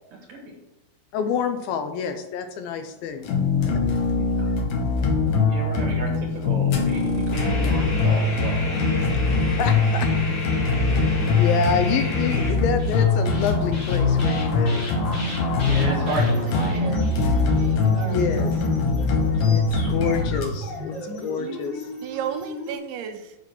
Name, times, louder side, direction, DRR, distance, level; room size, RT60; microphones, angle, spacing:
voice 1, 1.1-3.3 3.6-4.6 9.1-10.1 10.8-14.8 18.0-18.6 19.4-21.9, left 6 dB, 80° left, 7 dB, 2.3 m, -28 dB
sound 1, 3.2-20.5, left 4 dB, 65° left, 2.2 m, -22 dB
voice 2, 4.1-4.6 5.5-8.6 15.6-16.9, right 2 dB, 65° right, 0 dB, 1.9 m, -33 dB
sound 2, 6.7-22.8, equal, 30° left, 2.1 m, -34 dB
voice 3, 15.7-17.2 17.5-18.2 18.8-18.9 22.0-23.4, right 8 dB, 85° right, 7 dB, 2.6 m, -35 dB
8.1 x 5.1 x 5.9 m, 1.0 s
omnidirectional pair, 4.7 m